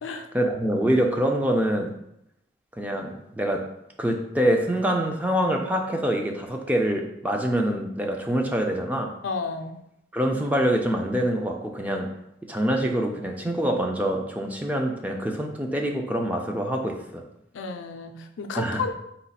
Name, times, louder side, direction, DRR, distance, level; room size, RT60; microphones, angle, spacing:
voice 1, 0.3-1.9 2.8-3.7 4.0-9.2 10.1-12.1 12.5-17.2 18.6-18.8, right 1 dB, 10° right, 2 dB, 0.4 m, -25 dB
voice 2, 9.2-9.8 17.5-18.9, left 4 dB, 85° left, 5 dB, 0.4 m, -32 dB
4.1 x 2.3 x 4.0 m, 0.78 s
head